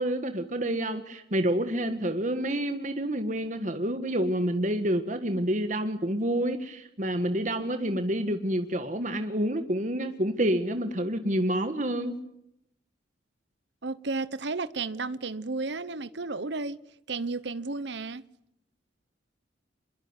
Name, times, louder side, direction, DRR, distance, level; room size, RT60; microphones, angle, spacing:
voice 1, 0.0-12.2, right 1 dB, 40° right, 1.6 m, -28 dB
voice 2, 13.8-16.8 17.1-18.2, right 3 dB, 65° right, 1.0 m, -33 dB
26.5 x 22.5 x 9.8 m
head